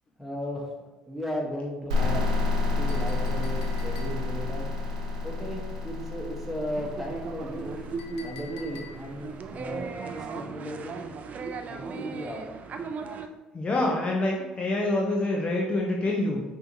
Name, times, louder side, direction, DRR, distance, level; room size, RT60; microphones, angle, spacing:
voice 1, 0.2-0.7 1.1-2.3 2.8-4.7 5.2-7.8 8.2-11.0 11.7-12.5, equal, 5° right, -2 dB, 1.3 m, -35 dB
sound 1, 1.9-9.4, left 3 dB, 85° right, 0.6 m, -30 dB
Chink clink, 2.9-4.5 8.0-9.3, left 6 dB, 75° left, 0.5 m, -49 dB
sound 2, 6.7-13.3, right 4 dB, 45° right, 0.4 m, -37 dB
voice 2, 13.5-16.4, left 2 dB, 30° left, -1 dB, 0.7 m, -26 dB
5.5 x 2.8 x 2.9 m, 1.2 s
hypercardioid pair, 60°, 4 cm